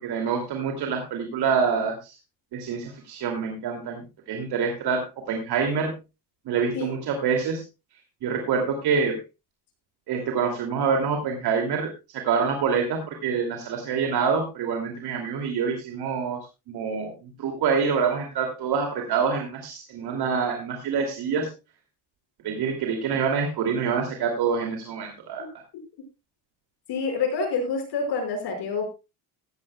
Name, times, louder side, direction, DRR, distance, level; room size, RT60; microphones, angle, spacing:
voice 1, 0.0-2.2 2.5-4.0 4.3-5.9 6.5-7.6 8.2-9.2 10.1-16.4 16.7-21.5 22.4-25.4, right 6 dB, 65° right, 3 dB, 2.6 m, -26 dB
voice 2, 26.9-28.9, left 4 dB, 70° left, 4 dB, 5.5 m, -27 dB
15.5 x 13.5 x 2.3 m, 0.27 s
cardioid pair, 120°, 42 cm